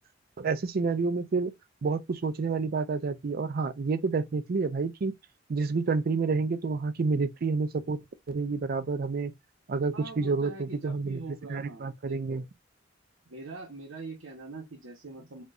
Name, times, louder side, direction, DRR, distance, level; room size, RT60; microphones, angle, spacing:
voice 1, 0.4-1.5 1.8-5.1 5.5-9.3 9.7-11.2 11.5-12.4, right 4 dB, 50° right, 0.4 m, -29 dB
voice 2, 9.9-12.5 13.3-15.4, right 3 dB, 75° right, 1.0 m, -43 dB
4.3 x 2.4 x 2.4 m
head